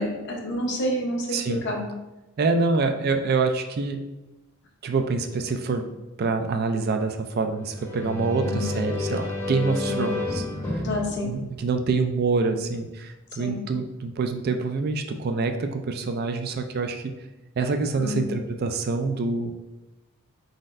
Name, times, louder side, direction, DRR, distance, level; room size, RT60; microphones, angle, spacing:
voice 1, 0.0-1.9 8.4-8.7 9.9-10.0 10.8-11.4 13.4-13.6 18.0-18.2, left 1 dB, 55° left, 1 dB, 0.8 m, -29 dB
voice 2, 1.3-1.6 2.4-4.0 4.8-5.8 6.2-10.8 11.3-17.1 17.6-19.5, right 4 dB, 45° right, 6 dB, 0.3 m, -26 dB
sound 1, 7.6-12.3, left 2 dB, 10° left, 0.7 m, -31 dB
4.3 x 4.0 x 2.5 m, 1.0 s
head